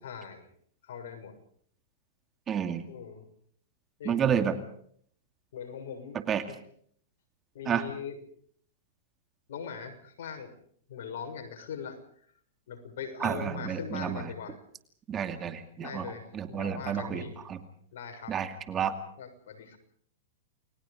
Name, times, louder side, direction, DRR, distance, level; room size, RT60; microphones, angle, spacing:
voice 1, 0.0-0.5 0.8-1.3 2.9-3.3 4.0-4.5 5.5-6.2 7.5-8.2 9.5-10.5 10.9-12.0 12.7-14.5 15.8-17.4 17.9-18.3 19.2-19.8, left 7 dB, 70° left, 5 dB, 6.6 m, -41 dB
voice 2, 2.5-2.8 4.0-4.6 6.1-6.4 7.7-7.9 13.2-14.3 15.1-17.2 17.5-17.6 18.3-18.9, right 8 dB, 20° right, 8 dB, 2.5 m, -30 dB
29.5 x 21.0 x 5.2 m, 0.62 s
hypercardioid pair, 140°, 0 cm